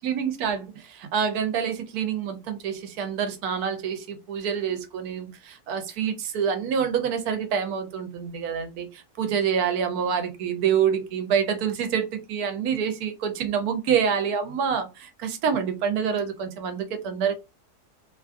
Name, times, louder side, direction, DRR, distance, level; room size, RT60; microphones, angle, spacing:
voice 1, 0.0-17.3, right 7 dB, 75° right, 1.1 m, -27 dB
2.9 x 2.3 x 2.4 m
omnidirectional pair, 1.6 m